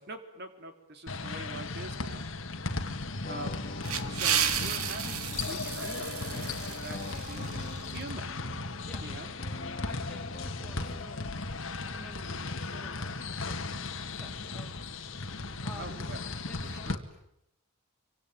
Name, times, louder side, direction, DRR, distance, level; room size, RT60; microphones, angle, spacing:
voice 1, 0.0-2.3 2.5-2.7 3.3-3.8 4.1-8.3 9.0-9.3 15.8-16.2 16.6-17.0, right 1 dB, 50° right, 7 dB, 3.4 m, -44 dB
sound 1, 1.1-16.9, left 3 dB, 60° left, 1.9 m, -36 dB
sound 2, 3.2-11.3, left 1 dB, 40° left, 1.7 m, -45 dB
sound 3, 3.5-8.1, right 8 dB, 90° right, 2.0 m, -33 dB
voice 2, 9.8-11.3 11.9-13.1 13.4-13.6 14.1-14.8 15.6-16.1 16.5-17.0, left 1 dB, 5° left, -1 dB, 2.6 m, -50 dB
26.0 x 25.0 x 9.2 m, 0.78 s
head